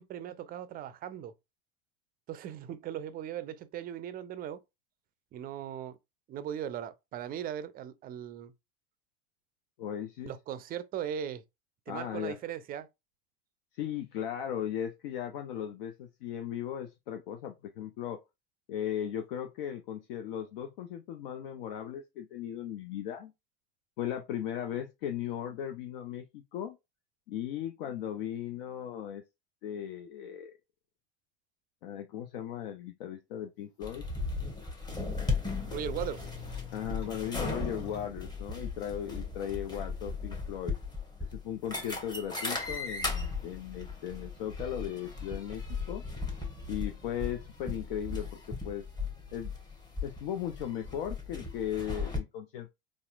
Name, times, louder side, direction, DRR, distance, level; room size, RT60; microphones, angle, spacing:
voice 1, 0.0-1.3 2.3-4.6 5.3-6.0 6.3-8.5 10.2-11.4 11.9-12.9 35.7-36.3, right 9 dB, 30° right, 0.4 m, -38 dB
voice 2, 9.8-10.3 11.9-12.4 13.8-18.2 18.7-23.3 24.0-26.8 27.3-29.2 29.6-30.6 31.8-34.1 36.7-40.8 41.2-46.0 46.7-48.9 49.3-49.5 50.0-52.7, left 10 dB, 60° left, 0.5 m, -37 dB
sound 1, 33.7-33.8 34.0-34.1 34.6-35.2 35.6-38.1, left 10 dB, 90° left, 1.3 m, -48 dB
sound 2, 33.8-52.2, left 3 dB, 15° left, 1.0 m, -37 dB
4.1 x 2.4 x 2.3 m
figure-of-eight pair, 75°, 32 cm